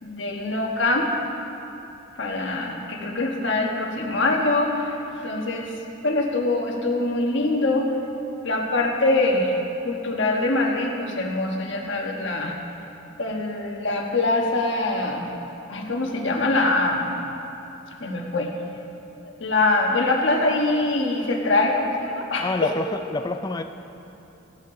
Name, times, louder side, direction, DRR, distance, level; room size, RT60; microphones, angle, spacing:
voice 1, 0.0-1.2 2.2-5.0 5.2-5.7 6.0-7.9 8.4-12.6 13.2-15.3 15.7-17.1 18.0-18.5 19.2-22.7, left 2 dB, 60° left, 0 dB, 1.4 m, -23 dB
voice 2, 22.4-23.6, left 2 dB, 20° left, 7 dB, 0.3 m, -27 dB
16.0 x 11.0 x 3.8 m, 2.9 s
head